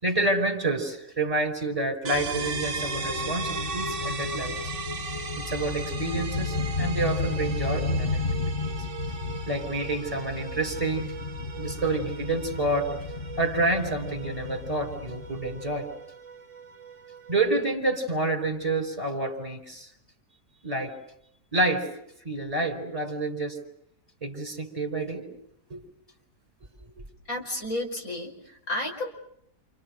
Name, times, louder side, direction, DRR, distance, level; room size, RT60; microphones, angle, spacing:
voice 1, 0.0-4.6 5.4-8.2 8.5-8.8 9.5-11.1 11.6-12.9 13.4-15.9 17.3-19.9 20.6-20.9 21.5-21.9 22.3-23.6 24.2-25.3 25.7-25.8, right 2 dB, 20° right, 2 dB, 5.2 m, -28 dB
sound 1, 2.1-16.0, left 4 dB, 35° left, 1.6 m, -33 dB
sound 2, 2.1-17.6, right 4 dB, 50° right, 1.8 m, -37 dB
voice 2, 27.3-29.1, left 1 dB, 60° left, 1 dB, 5.8 m, -32 dB
29.5 x 28.5 x 6.6 m, 0.71 s
omnidirectional pair, 1.7 m